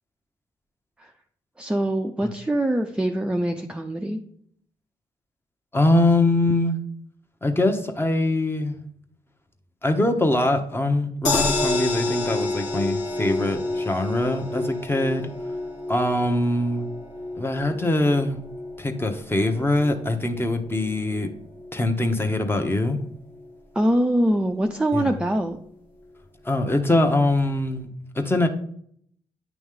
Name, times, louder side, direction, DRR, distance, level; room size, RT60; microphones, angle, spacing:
voice 1, 1.6-4.2 23.7-25.6, right 1 dB, 10° right, 3 dB, 0.5 m, -23 dB
voice 2, 5.7-6.8 7.4-8.8 9.8-15.3 15.9-16.9 17.4-18.4 18.8-21.3 21.7-23.0 24.9-25.1 26.4-28.5, left 2 dB, 20° left, 5 dB, 1.0 m, -23 dB
sound 1, 11.2-23.5 23.9-24.0 24.2-24.3, left 2 dB, 85° left, 1.4 m, -30 dB
9.1 x 3.1 x 3.7 m, 0.65 s
supercardioid pair, 55°, 12 cm